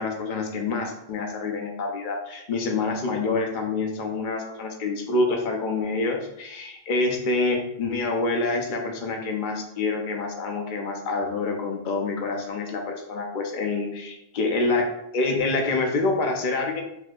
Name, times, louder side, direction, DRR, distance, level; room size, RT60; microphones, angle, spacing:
voice 1, 0.0-14.9 15.1-16.8, left 3 dB, 55° left, 2 dB, 0.7 m, -27 dB
4.2 x 2.6 x 2.3 m, 0.83 s
omnidirectional pair, 1.0 m